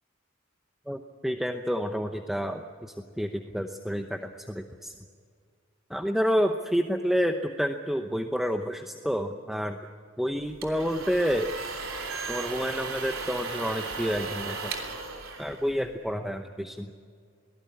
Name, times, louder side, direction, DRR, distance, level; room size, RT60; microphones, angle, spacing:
voice 1, 0.9-4.9 5.9-9.8 10.2-11.5 12.3-14.7 15.4-16.9, equal, ahead, 5 dB, 0.8 m, -29 dB
sound 1, 10.4-16.1, right 4 dB, 75° right, 3.2 m, -36 dB
23.0 x 18.0 x 8.6 m, 2.1 s
head